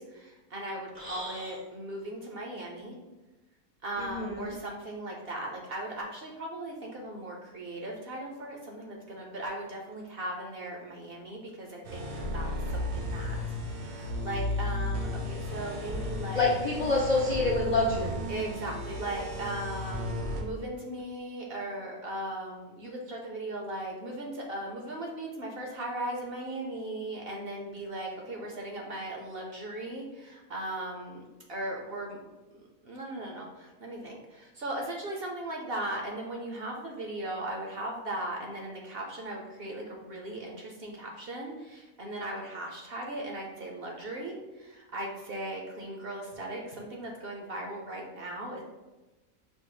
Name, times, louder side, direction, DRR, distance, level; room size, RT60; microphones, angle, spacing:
voice 1, 0.0-3.0 3.8-13.4 13.7-16.6 18.3-31.2 31.5-32.2 32.6-48.6, right 1 dB, 55° right, 0 dB, 0.7 m, -38 dB
voice 2, 1.0-1.5 4.0-4.5 16.3-18.2, left 2 dB, 50° left, -4 dB, 0.5 m, -27 dB
sound 1, 11.8-20.4, left 1 dB, 80° right, 1.4 m, -34 dB
5.4 x 2.0 x 4.8 m, 1.1 s
omnidirectional pair, 1.5 m